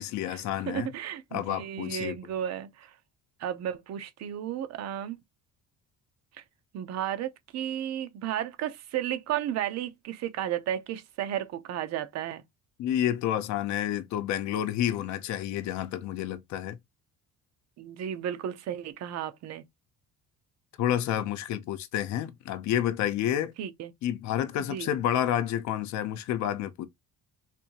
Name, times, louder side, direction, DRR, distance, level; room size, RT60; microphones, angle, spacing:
voice 1, 0.0-0.9 1.3-2.2 12.8-16.8 20.8-23.5 24.0-26.9, left 11 dB, 60° left, 0.8 m, -29 dB
voice 2, 0.7-2.9 3.4-5.2 6.4-6.5 6.7-12.4 17.8-19.6 23.6-23.9 24.7-24.9, right 10 dB, 55° right, 0.8 m, -33 dB
4.3 x 2.7 x 2.9 m
cardioid pair, 165°, 31 cm